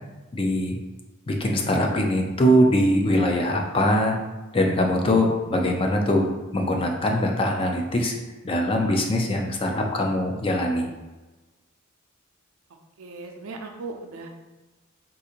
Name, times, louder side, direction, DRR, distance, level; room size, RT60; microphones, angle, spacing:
voice 1, 0.3-0.8 1.3-4.2 4.5-6.3 6.5-8.1 8.4-10.9, equal, 25° left, 1 dB, 0.4 m, -22 dB
voice 2, 13.0-14.3, right 3 dB, 85° right, 3 dB, 0.5 m, -37 dB
3.7 x 2.5 x 2.8 m, 1.2 s
head